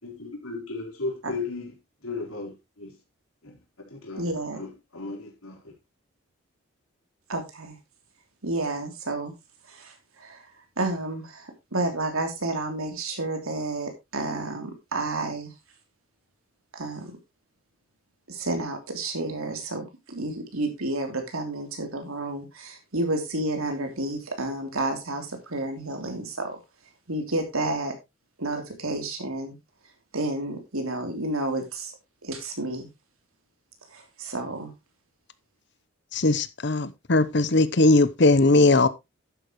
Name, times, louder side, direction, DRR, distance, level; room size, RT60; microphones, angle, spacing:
voice 1, 0.0-1.7 2.0-3.0 3.4-4.2 4.5-5.7, left 3 dB, 80° left, 4.0 m, -36 dB
voice 2, 4.2-4.6 7.3-7.8 8.4-9.3 9.6-10.5 10.8-15.5 16.7-17.1 18.3-26.6 27.1-27.9 28.4-29.6 30.1-31.9 32.2-32.9 33.9-34.7, right 2 dB, 85° right, 3.2 m, -30 dB
voice 3, 36.1-38.9, left 2 dB, 50° left, 0.8 m, -19 dB
11.5 x 9.1 x 3.1 m
head